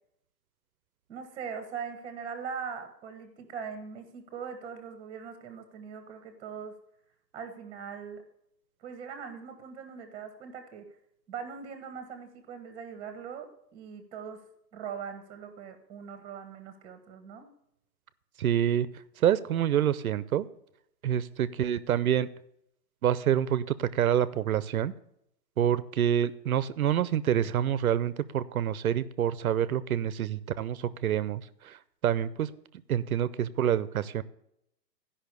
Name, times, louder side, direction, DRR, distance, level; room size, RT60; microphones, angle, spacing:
voice 1, 1.1-6.8 7.3-8.2 8.8-10.8 11.3-17.5, right 6 dB, 10° right, 8 dB, 1.2 m, -41 dB
voice 2, 18.4-18.9 19.2-20.5 21.0-22.3 23.0-24.9 25.6-31.8 32.0-32.5 32.9-34.2, right 10 dB, 60° right, 16 dB, 0.6 m, -27 dB
12.0 x 5.6 x 6.7 m, 0.77 s
hypercardioid pair, 160°, 50 cm